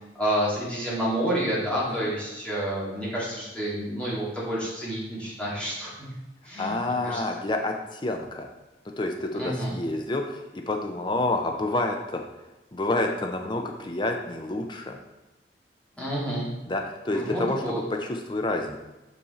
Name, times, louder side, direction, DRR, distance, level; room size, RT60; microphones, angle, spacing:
voice 1, 0.1-6.1 6.4-6.7 7.0-7.2 9.3-9.7 16.0-16.5 17.1-17.8, right 1 dB, 5° left, -8 dB, 2.2 m, -29 dB
voice 2, 6.6-8.5 9.0-12.2 12.7-15.0 16.7-18.8, left 2 dB, 25° left, 3 dB, 0.5 m, -28 dB
5.5 x 5.3 x 4.2 m, 1.0 s
head